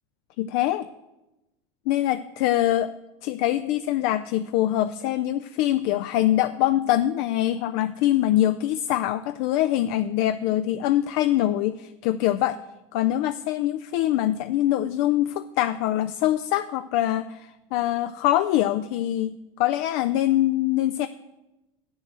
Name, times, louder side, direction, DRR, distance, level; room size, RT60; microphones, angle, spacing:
voice 1, 0.4-0.9 1.9-2.9 3.2-12.6 12.9-21.1, left 13 dB, 60° left, 11 dB, 0.4 m, -24 dB
7.8 x 6.3 x 7.4 m, 1.0 s
supercardioid pair, 125°, 15 cm